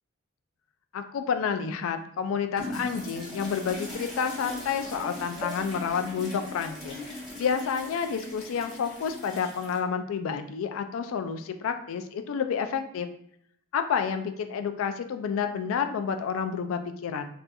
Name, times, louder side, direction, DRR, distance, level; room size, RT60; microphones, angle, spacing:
voice 1, 0.9-13.1 13.7-17.3, left 6 dB, 70° left, 8 dB, 0.3 m, -30 dB
sound 1, 2.6-9.8, left 1 dB, ahead, 1.3 m, -39 dB
4.1 x 2.5 x 2.3 m, 0.69 s
head